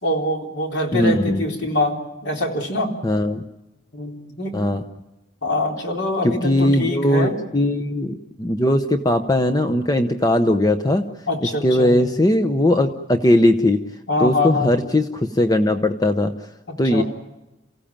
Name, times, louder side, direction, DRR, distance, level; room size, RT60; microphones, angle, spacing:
voice 1, 0.0-2.9 3.9-4.6 5.4-7.4 11.3-12.0 14.1-14.7 16.7-17.0, left 2 dB, 65° left, 1 dB, 3.9 m, -24 dB
voice 2, 0.9-1.4 3.0-3.4 4.5-4.8 6.2-11.1 11.4-13.8 14.2-16.3 16.8-17.0, left 1 dB, 20° left, 8 dB, 0.8 m, -19 dB
29.0 x 16.0 x 8.8 m, 1.0 s
head